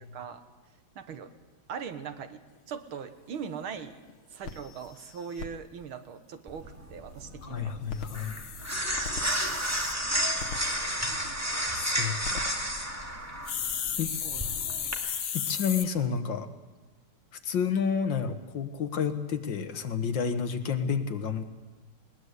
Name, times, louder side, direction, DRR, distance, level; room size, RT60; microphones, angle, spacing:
voice 1, 1.0-1.3 1.7-2.4 2.7-3.9 4.3-7.7 14.2-14.4 14.7-14.9, right 7 dB, 85° right, 9 dB, 2.2 m, -40 dB
sound 1, 3.3-3.4 3.8-3.9 4.1-4.2 4.4-5.5 7.8-9.9 10.4-10.6 12.0-12.4 13.5-15.9, left 8 dB, 90° left, 2.2 m, -35 dB
sound 2, 6.5-14.9, equal, 10° right, 2.1 m, -32 dB
voice 2, 7.4-8.4 11.7-12.6 14.0-14.1 15.3-16.5 17.4-21.4, left 7 dB, 65° left, 8 dB, 2.0 m, -30 dB
20.5 x 20.0 x 8.2 m, 1.2 s
omnidirectional pair, 2.2 m